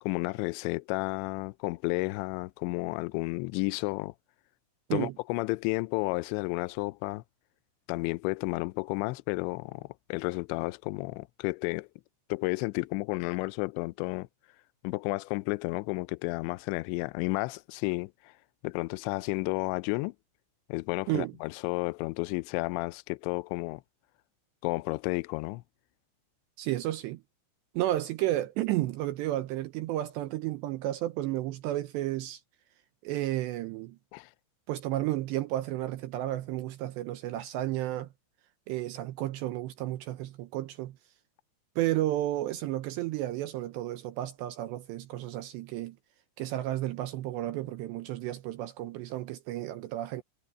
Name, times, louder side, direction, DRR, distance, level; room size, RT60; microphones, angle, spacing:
voice 1, 0.0-4.1 4.9-7.2 7.9-11.9 12.3-14.3 14.8-18.3 18.6-20.1 20.7-23.8 24.6-25.6 34.1-34.3, left 25 dB, 85° left, 2.6 m, -32 dB
voice 2, 26.6-27.2 27.7-32.4 33.0-34.0 34.7-38.1 38.7-41.0 41.8-46.0 46.4-50.2, right 15 dB, 80° right, 2.7 m, -32 dB
omnidirectional pair, 5.7 m